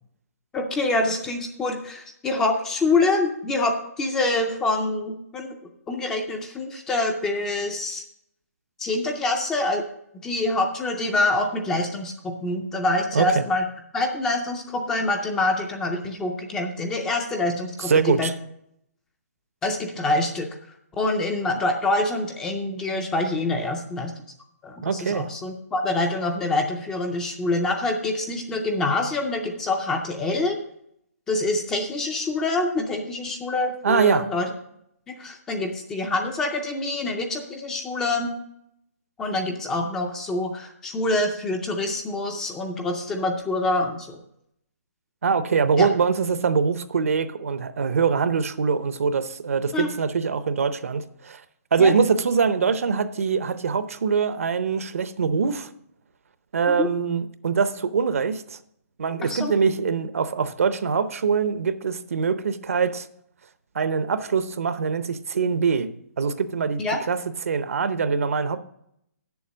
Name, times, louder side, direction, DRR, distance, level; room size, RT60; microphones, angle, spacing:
voice 1, 0.5-5.6 5.9-8.0 8.8-9.8 10.2-12.1 12.4-13.6 13.9-18.3 19.6-20.5 21.0-24.1 24.6-30.6 31.3-34.5 35.1-38.3 39.2-44.2 45.8-45.9 49.7-49.9 51.8-51.9 56.7-56.9 59.2-59.5 66.8-67.0, left 2 dB, 5° left, 0.4 m, -26 dB
voice 2, 13.1-13.4 17.8-18.3 24.8-25.3 33.8-34.3 45.2-51.4 51.7-55.7 56.5-58.6 59.0-63.1 63.7-65.9 66.2-66.8 67.1-68.6, right 5 dB, 60° right, 0.7 m, -23 dB
8.3 x 7.1 x 6.2 m
hypercardioid pair, 175°, 9 cm